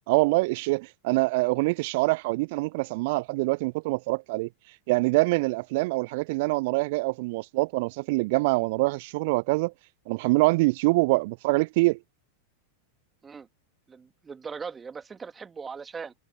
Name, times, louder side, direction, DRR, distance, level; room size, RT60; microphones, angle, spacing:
voice 1, 0.1-4.5 4.9-9.7 10.1-12.0, right 24 dB, 50° right, 0.4 m, -25 dB
voice 2, 13.9-16.1, right 5 dB, 15° right, 2.5 m, -39 dB
figure-of-eight pair, 90°, 0 cm